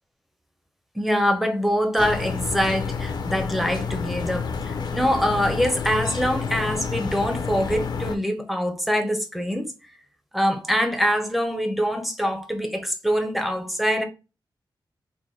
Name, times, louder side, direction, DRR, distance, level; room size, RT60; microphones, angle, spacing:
voice 1, 0.9-9.7 10.3-14.0, equal, ahead, 0.6 m, -24 dB
sound 1, 2.0-8.2, left 5 dB, 60° left, 0.5 m, -29 dB
3.9 x 2.2 x 3.1 m
wide cardioid pair, 135°, 8 cm